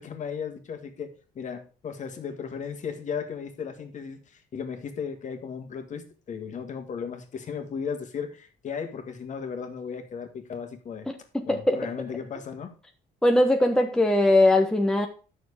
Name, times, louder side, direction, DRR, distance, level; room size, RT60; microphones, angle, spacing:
voice 1, 0.0-11.1 11.5-12.7, left 6 dB, 45° left, 6 dB, 1.8 m, -36 dB
voice 2, 11.3-11.9 13.2-15.1, left 1 dB, 5° left, 4 dB, 1.0 m, -20 dB
9.4 x 6.5 x 4.9 m, 0.37 s
cardioid pair, 110°, 17 cm